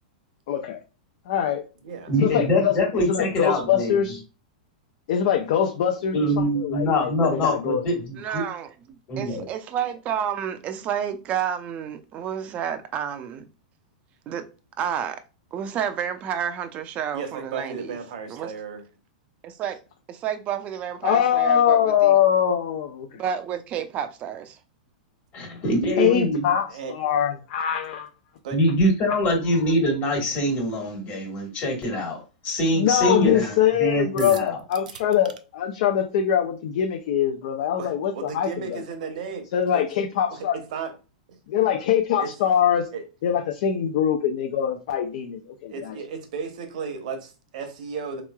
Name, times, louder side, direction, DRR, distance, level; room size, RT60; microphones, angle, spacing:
voice 1, 0.5-0.8 1.3-1.6 2.2-4.2 5.1-6.2 6.6-7.8 21.0-23.1 26.0-28.1 32.8-38.5 39.5-40.6 41.5-42.9 43.2-45.9, left 9 dB, 60° left, 0.5 m, -23 dB
voice 2, 2.1-4.1 6.1-8.4 9.1-9.5 25.3-26.5 28.5-32.2 32.4-34.6, equal, 35° left, 1.5 m, -24 dB
voice 3, 8.2-13.5 14.3-14.5 14.8-15.2 15.5-18.0 18.3-18.5 19.4-19.8 20.1-22.2 23.1-24.6, right 8 dB, 35° right, 0.5 m, -30 dB
voice 4, 17.1-18.8 26.7-27.0 28.4-28.6 37.8-39.9 40.3-40.9 41.3-41.4 42.2-42.3 42.9-43.1 45.7-48.2, right 5 dB, 65° right, 0.9 m, -34 dB
sound 1, 34.2-35.4, right 8 dB, 85° right, 0.4 m, -39 dB
3.6 x 3.0 x 2.3 m
hypercardioid pair, 125°, 4 cm